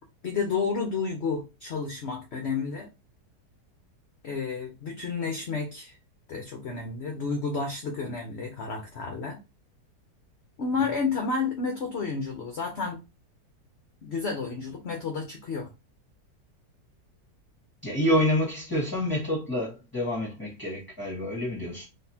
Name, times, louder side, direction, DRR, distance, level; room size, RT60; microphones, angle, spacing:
voice 1, 0.2-2.9 4.2-6.0 6.3-9.4 10.6-13.0 14.0-15.7, left 4 dB, 55° left, 0.8 m, -31 dB
voice 2, 17.8-21.9, left 1 dB, 15° left, 1.4 m, -27 dB
4.0 x 3.5 x 2.8 m
omnidirectional pair, 1.7 m